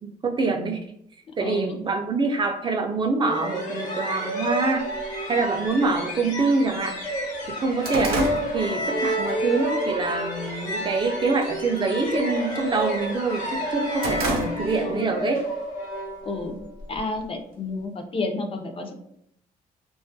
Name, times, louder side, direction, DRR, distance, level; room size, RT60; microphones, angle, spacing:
voice 1, 0.0-0.8 1.4-4.9 5.3-7.0 7.5-15.4, right 3 dB, 30° right, 4 dB, 0.3 m, -25 dB
voice 2, 1.3-1.7 14.8-15.2 16.2-16.6 16.9-18.9, left 3 dB, 35° left, 5 dB, 0.4 m, -31 dB
sound 1, 3.2-16.7, equal, 55° left, 0.9 m, -30 dB
sound 2, 5.0-5.1 6.0-6.1 6.5-6.6 7.0-9.4 9.8-10.1 10.5-11.0 11.3-11.6 11.9-13.1 13.5-15.0 15.4-15.5 16.4-17.3, right 2 dB, 80° right, 0.5 m, -31 dB
2.3 x 2.1 x 2.5 m, 0.73 s
cardioid pair, 90°, 16 cm